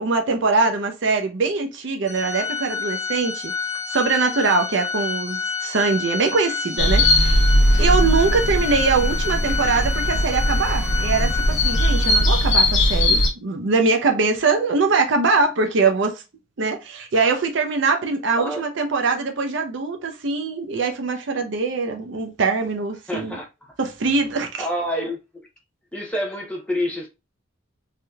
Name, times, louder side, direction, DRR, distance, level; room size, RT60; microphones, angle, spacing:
voice 1, 0.0-3.5 3.9-7.4 7.8-16.2 16.6-23.4 23.8-24.7, right 4 dB, 55° right, 0.5 m, -22 dB
Organ, 2.1-12.7, left 5 dB, 35° left, 1.4 m, -29 dB
sound 1, 6.8-13.3, left 1 dB, 65° left, 0.8 m, -19 dB
voice 2, 23.1-23.7 24.6-25.5 25.9-27.1, equal, 5° left, 0.7 m, -28 dB
3.3 x 2.7 x 2.2 m
head